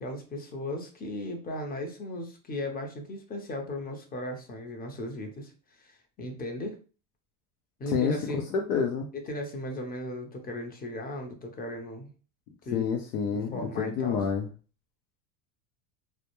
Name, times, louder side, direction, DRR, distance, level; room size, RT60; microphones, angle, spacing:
voice 1, 0.0-5.5 5.8-6.8 7.8-8.5 9.1-12.1 12.7-12.9 13.3-14.2, left 1 dB, 20° left, 3 dB, 0.6 m, -36 dB
voice 2, 8.5-9.1 12.7-14.5, left 6 dB, 85° left, 3 dB, 0.6 m, -28 dB
2.3 x 2.1 x 2.9 m, 0.36 s
supercardioid pair, 105°, 49 cm